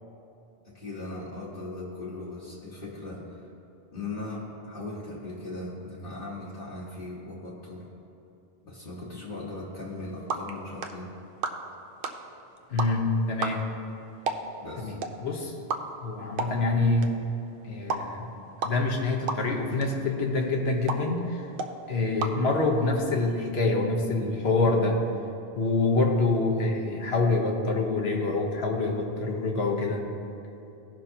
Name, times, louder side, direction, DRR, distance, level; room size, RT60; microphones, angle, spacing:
voice 1, 0.6-3.5 3.9-7.9 8.6-11.1 14.6-15.0, left 2 dB, 60° left, -8 dB, 1.4 m, -38 dB
sound 1, 9.8-23.1, right 3 dB, 60° right, 0.8 m, -37 dB
voice 2, 12.7-13.6 14.8-15.5 16.0-17.2 17.6-18.3 18.6-21.5 21.9-25.0 25.5-30.0, left 3 dB, 75° left, 1 dB, 1.3 m, -26 dB
16.5 x 5.6 x 2.8 m, 2.8 s
omnidirectional pair, 1.1 m